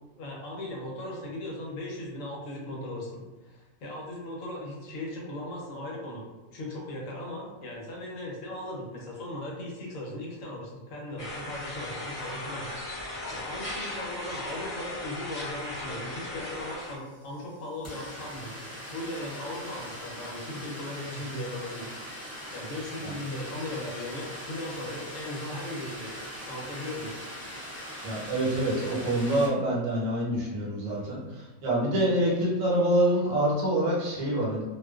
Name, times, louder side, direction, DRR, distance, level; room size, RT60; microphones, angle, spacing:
voice 1, 0.2-6.3 6.5-13.0 13.3-18.6 18.9-22.2 22.5-26.2 26.5-27.2, left 1 dB, 70° left, -2 dB, 1.0 m, -38 dB
sound 1, 11.2-17.0, left 1 dB, 40° left, 1.0 m, -37 dB
sound 2, 15.8-15.9 16.1-29.5, equal, 25° left, 0.3 m, -41 dB
voice 2, 28.0-34.6, right 1 dB, 75° right, -6 dB, 1.2 m, -26 dB
2.4 x 2.2 x 2.3 m, 1.2 s
omnidirectional pair, 1.4 m